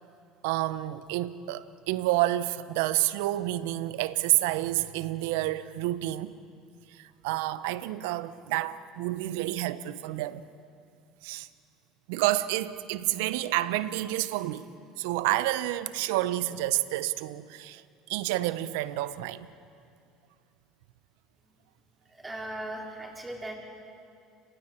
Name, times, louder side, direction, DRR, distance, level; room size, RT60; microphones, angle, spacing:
voice 1, 0.4-6.3 7.2-10.4 11.2-11.5 12.1-14.7 15.0-17.8 18.1-19.5, right 16 dB, 80° right, 0.7 m, -29 dB
voice 2, 22.1-23.5, right 1 dB, 15° right, 4.8 m, -38 dB
30.0 x 22.5 x 4.5 m
supercardioid pair, 85°, 0 cm